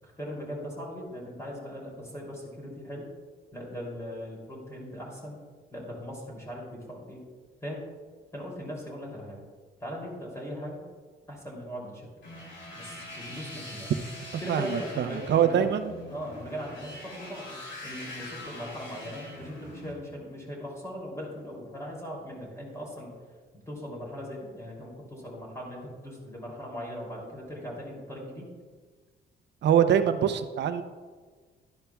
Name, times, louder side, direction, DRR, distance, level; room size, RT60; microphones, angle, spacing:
voice 1, 0.0-3.1 3.5-5.4 5.7-7.2 7.6-7.9 8.3-9.4 9.8-10.8 11.3-12.1 12.7-13.9 14.4-15.8 16.1-23.1 23.5-28.5, equal, 15° left, -3 dB, 2.9 m, -39 dB
sound 1, 12.2-19.9, left 1 dB, 65° left, 3.0 m, -43 dB
voice 2, 14.5-15.9 29.6-30.8, right 9 dB, 60° right, 9 dB, 0.7 m, -24 dB
11.5 x 10.0 x 2.3 m, 1.5 s
cardioid pair, 90°, 20 cm